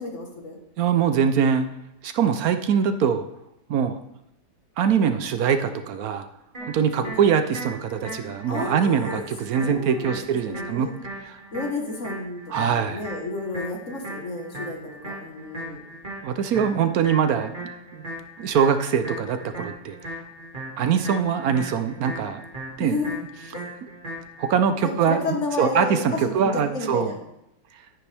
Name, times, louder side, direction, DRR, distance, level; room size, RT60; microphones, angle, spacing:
voice 1, 0.0-0.6 6.6-7.1 8.5-9.2 9.6-10.9 11.5-14.8 15.0-15.9 22.8-23.2 23.5-23.7 24.8-27.2, left 3 dB, 45° left, 2 dB, 1.7 m, -32 dB
voice 2, 0.8-1.7 2.0-3.2 3.7-4.0 4.8-6.3 6.7-10.9 11.2-11.4 12.5-13.0 16.2-17.5 17.9-18.0 18.4-19.9 20.8-22.4 22.8-23.0 24.4-27.1, right 7 dB, 65° right, 9 dB, 1.0 m, -23 dB
sound 1, 6.5-24.5, right 1 dB, 30° right, 2.5 m, -38 dB
9.8 x 9.7 x 3.4 m, 0.85 s
omnidirectional pair, 1.9 m